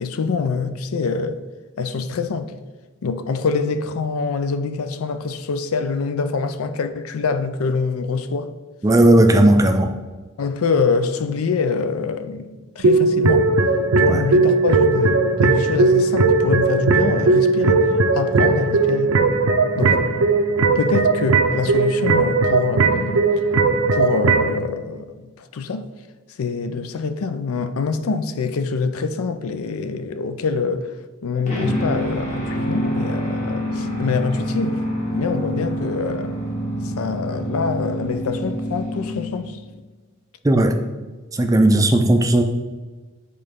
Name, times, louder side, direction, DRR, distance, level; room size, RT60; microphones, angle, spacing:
voice 1, 0.0-1.4 1.8-2.5 3.0-8.5 10.4-13.5 14.0-17.8 18.2-19.2 19.8-20.0 20.7-23.3 23.9-25.8 26.4-31.0 31.2-34.8 35.1-36.5 36.8-39.6, left 4 dB, 80° left, 0.4 m, -25 dB
voice 2, 8.8-10.0 14.1-14.2 19.9-20.0 40.4-40.7 41.3-42.4, right 1 dB, 15° right, 0.4 m, -15 dB
sound 1, 12.8-24.6, right 3 dB, 70° right, 0.5 m, -18 dB
sound 2, 31.5-39.7, equal, 35° left, 1.4 m, -27 dB
7.6 x 3.9 x 3.6 m
head